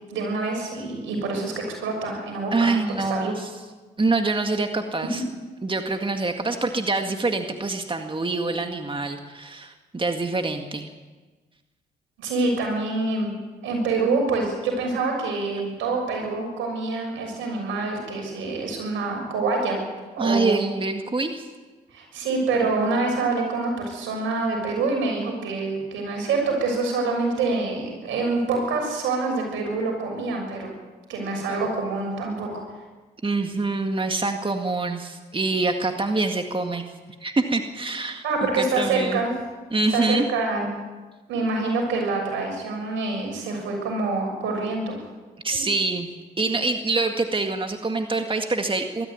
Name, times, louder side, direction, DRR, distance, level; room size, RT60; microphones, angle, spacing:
voice 1, 0.1-2.7 3.1-3.3 12.2-19.8 20.2-20.6 21.9-30.7 31.1-32.5 38.2-39.4 39.9-40.7 41.3-45.0 45.5-45.7, right 3 dB, 80° right, 1 dB, 6.7 m, -26 dB
voice 2, 2.5-3.5 4.0-5.2 5.6-10.9 20.2-21.5 33.2-36.8 37.2-38.2 38.6-39.2 39.7-40.3 45.4-46.1 46.4-49.1, right 3 dB, 25° right, 5 dB, 2.0 m, -25 dB
21.0 x 13.5 x 9.5 m, 1.3 s
supercardioid pair, 50°, 20 cm